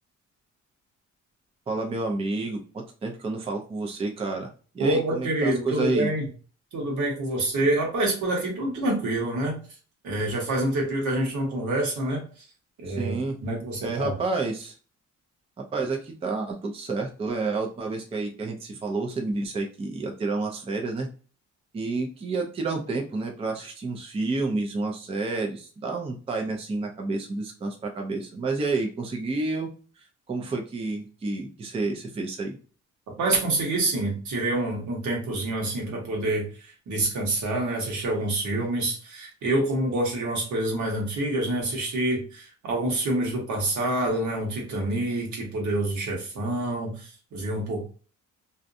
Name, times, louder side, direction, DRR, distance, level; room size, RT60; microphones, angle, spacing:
voice 1, 1.7-6.1 12.9-13.4 13.8-14.8 15.7-21.1 21.7-29.7 30.0-32.6, right 3 dB, 20° right, 2 dB, 0.4 m, -30 dB
voice 2, 4.8-6.2 6.7-9.6 10.0-12.2 12.8-13.1 13.4-14.1 33.2-36.4 36.9-47.8, right 1 dB, 75° right, -1 dB, 1.2 m, -27 dB
2.5 x 2.1 x 2.6 m, 0.38 s
cardioid pair, 120°, 30 cm